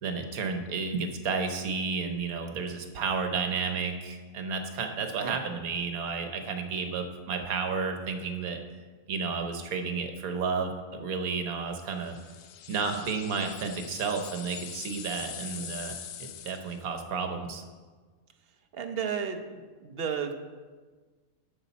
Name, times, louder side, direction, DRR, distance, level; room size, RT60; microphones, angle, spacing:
voice 1, 0.0-8.6 9.1-12.1 12.7-17.6, right 5 dB, 75° right, 5 dB, 1.4 m, -32 dB
sound 1, 12.0-16.8, left 9 dB, 65° left, 0.7 m, -43 dB
voice 2, 18.7-20.3, right 7 dB, 50° right, 6 dB, 0.9 m, -33 dB
11.0 x 6.7 x 4.1 m, 1.4 s
omnidirectional pair, 1.5 m